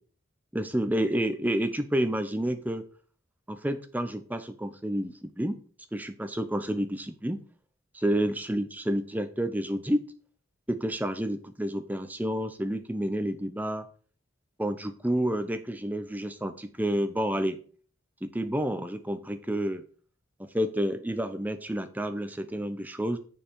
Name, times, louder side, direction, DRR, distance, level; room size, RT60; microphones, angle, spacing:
voice 1, 0.5-2.9 3.5-5.6 5.9-7.4 7.9-10.0 10.7-13.8 14.6-17.6 18.2-19.8 20.4-23.2, right 1 dB, 10° right, 9 dB, 0.6 m, -29 dB
7.0 x 5.6 x 5.4 m, 0.42 s
head